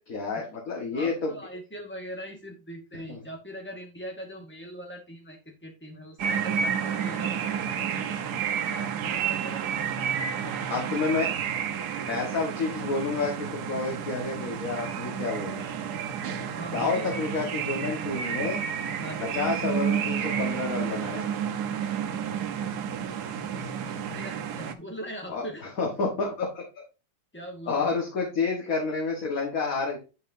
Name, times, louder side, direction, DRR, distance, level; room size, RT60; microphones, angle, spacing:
voice 1, 0.1-1.3 3.1-3.2 10.7-11.3 12.1-15.7 16.7-18.6 19.2-21.3 25.3-25.4 25.8-26.8 27.7-30.0, left 4 dB, 50° left, 0 dB, 1.8 m, -29 dB
voice 2, 0.9-10.9 16.4-17.1 19.0-19.3 23.3-25.7 27.3-27.9, equal, 10° left, 2 dB, 0.5 m, -42 dB
sound 1, 6.2-24.7, right 8 dB, 65° right, 1.3 m, -31 dB
9.9 x 5.5 x 2.6 m, 0.31 s
omnidirectional pair, 2.0 m